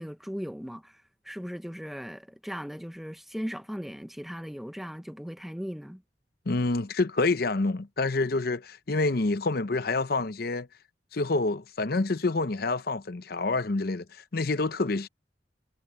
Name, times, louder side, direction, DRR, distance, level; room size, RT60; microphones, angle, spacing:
voice 1, 0.0-6.0, equal, ahead, 0.7 m, -38 dB
voice 2, 6.5-10.7 11.1-15.1, left 3 dB, 55° left, 0.7 m, -27 dB
head